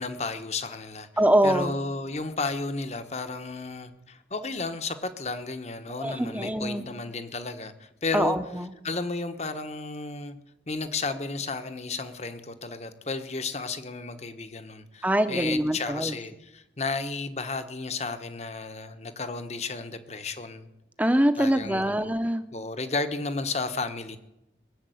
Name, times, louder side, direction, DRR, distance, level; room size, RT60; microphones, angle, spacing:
voice 1, 0.0-1.1 1.4-8.4 8.8-10.4 10.7-20.7 21.4-22.1 22.5-24.2, left 3 dB, 40° left, 9 dB, 1.2 m, -33 dB
voice 2, 1.2-1.7 6.0-6.9 8.1-8.7 15.0-16.1 21.0-22.4, right 1 dB, 10° right, 10 dB, 0.8 m, -24 dB
21.0 x 7.4 x 9.3 m, 0.90 s
head